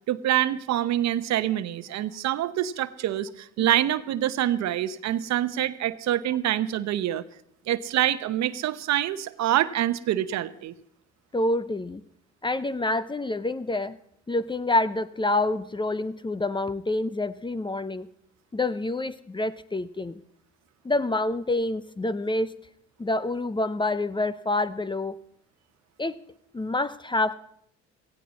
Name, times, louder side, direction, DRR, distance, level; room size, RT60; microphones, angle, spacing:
voice 1, 0.1-7.2 7.7-10.7, right 12 dB, 60° right, 13 dB, 0.9 m, -26 dB
voice 2, 11.3-12.0 12.4-14.0 14.3-18.1 18.5-20.1 20.8-22.5 23.0-25.2 26.0-26.2 26.5-27.3, left 2 dB, 15° left, 15 dB, 0.7 m, -27 dB
17.0 x 16.0 x 4.2 m, 0.71 s
hypercardioid pair, 65°, 31 cm